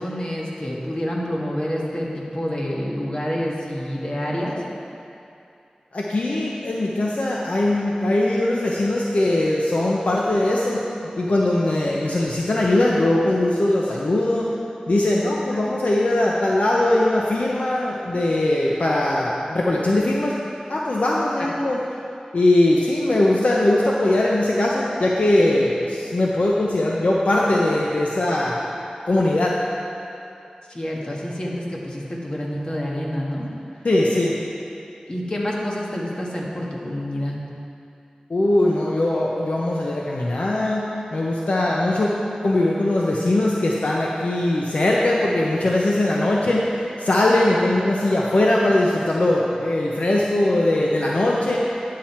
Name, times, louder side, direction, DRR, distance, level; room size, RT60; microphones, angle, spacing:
voice 1, 0.0-4.6 30.7-33.5 35.1-37.4, equal, 40° left, -3 dB, 1.6 m, -28 dB
voice 2, 5.9-10.8 11.2-14.5 14.9-20.3 20.7-21.8 22.3-28.6 29.1-29.5 33.8-34.4 38.3-40.8 41.1-42.1 42.4-51.6, left 1 dB, 65° left, -4 dB, 0.8 m, -20 dB
10.0 x 7.6 x 4.3 m, 2.7 s
wide cardioid pair, 70°, 2 cm